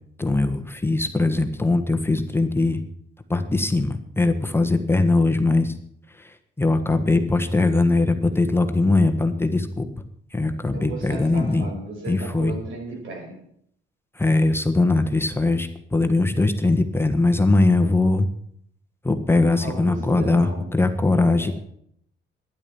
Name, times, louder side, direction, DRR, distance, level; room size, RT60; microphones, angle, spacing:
voice 1, 0.2-2.8 3.3-5.7 6.2-9.9 10.3-11.7 12.1-12.5 14.1-18.3 19.0-21.5, left 2 dB, 10° left, 6 dB, 1.4 m, -21 dB
voice 2, 10.7-13.4 19.5-20.7 21.4-21.5, right 2 dB, 80° right, 2 dB, 5.5 m, -35 dB
12.0 x 10.5 x 7.1 m, 0.65 s
cardioid pair, 90°, 20 cm